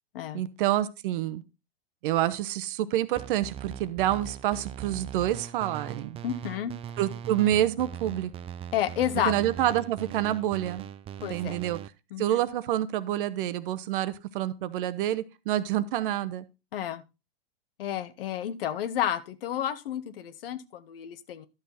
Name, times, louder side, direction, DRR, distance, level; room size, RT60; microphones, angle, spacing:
voice 1, 0.3-1.4 2.0-6.2 7.0-8.3 9.3-10.9 11.3-11.8 12.2-16.4, right 12 dB, 60° right, 14 dB, 1.0 m, -28 dB
sound 1, 3.2-11.9, right 9 dB, 20° right, 0.5 m, -40 dB
voice 2, 6.2-6.7 8.7-9.3 11.2-11.6 12.1-12.3 16.7-17.0 17.8-21.5, left 10 dB, 70° left, 13 dB, 1.2 m, -31 dB
12.0 x 6.5 x 4.0 m, 0.28 s
hypercardioid pair, 120°, 30 cm